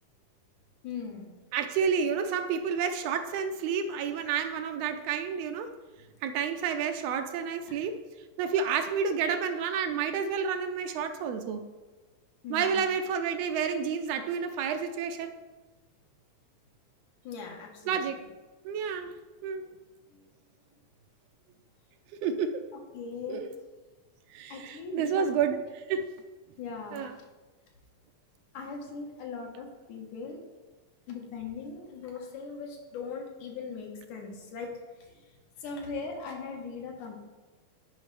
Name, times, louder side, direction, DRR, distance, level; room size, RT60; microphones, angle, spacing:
voice 1, 0.8-1.3 7.7-7.8 12.4-12.9 17.2-18.0 20.1-20.2 22.9-23.5 24.5-25.3 26.6-27.1 28.5-30.4 31.1-34.7 35.1-35.2 35.6-37.1, left 5 dB, 85° left, 0 dB, 2.6 m, -39 dB
voice 2, 1.5-5.7 6.2-8.0 8.4-11.7 12.5-15.3 17.8-18.2 18.6-19.1 19.4-19.6 22.2-22.6 23.3-23.6 24.3-26.1 26.9-27.1, right 6 dB, 80° right, 7 dB, 1.5 m, -30 dB
11.0 x 5.0 x 3.2 m, 1.2 s
omnidirectional pair, 3.3 m